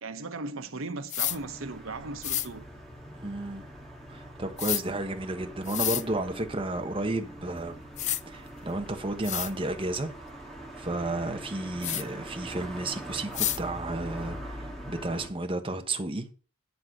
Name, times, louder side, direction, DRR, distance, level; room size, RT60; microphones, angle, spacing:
voice 1, 0.0-2.6, right 3 dB, 80° right, 1.1 m, -37 dB
sound 1, 1.1-1.4 2.2-2.5 4.6-4.8 5.6-6.0 7.5-7.6 8.0-8.2 8.9-9.0 9.2-9.5 11.8-12.0 13.3-13.6, left 12 dB, 35° left, 0.4 m, -29 dB
sound 2, 1.3-15.3, right 1 dB, ahead, 1.8 m, -43 dB
voice 2, 3.2-3.6 4.1-7.8 8.3-10.1 10.8-16.3, right 2 dB, 25° right, 1.1 m, -32 dB
10.5 x 4.1 x 7.7 m
head